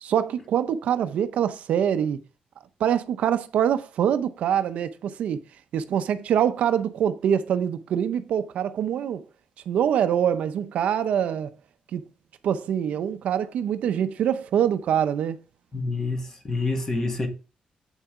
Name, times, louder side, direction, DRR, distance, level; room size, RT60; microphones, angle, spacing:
voice 1, 0.0-2.2 2.8-5.4 5.7-9.2 9.7-11.5 11.9-12.0 12.4-15.4, right 9 dB, 70° right, 0.6 m, -24 dB
voice 2, 15.7-17.3, left 3 dB, 25° left, 1.5 m, -27 dB
8.2 x 6.7 x 3.6 m
wide cardioid pair, 170°, 2 cm